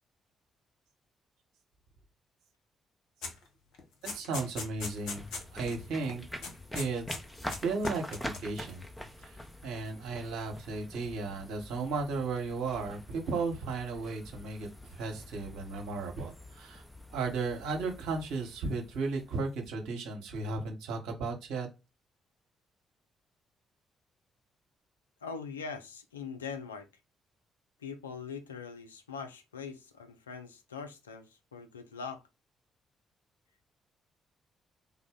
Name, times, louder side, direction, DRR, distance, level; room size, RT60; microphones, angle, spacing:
sound 1, 3.2-3.4 3.7-5.8 6.0-6.2 6.4-7.2 7.5-8.6, left 4 dB, 65° left, 0.8 m, -40 dB
voice 1, 4.1-6.2 6.7-7.1 7.6-8.8 9.2-16.8 17.1-21.7, right 3 dB, 70° right, 0.9 m, -35 dB
sound 2, 4.7-19.9, left 1 dB, 10° left, 0.8 m, -45 dB
voice 2, 25.2-26.9 27.8-32.2, left 5 dB, 85° left, 0.3 m, -42 dB
3.5 x 2.1 x 3.5 m
figure-of-eight pair, 40°, 0 cm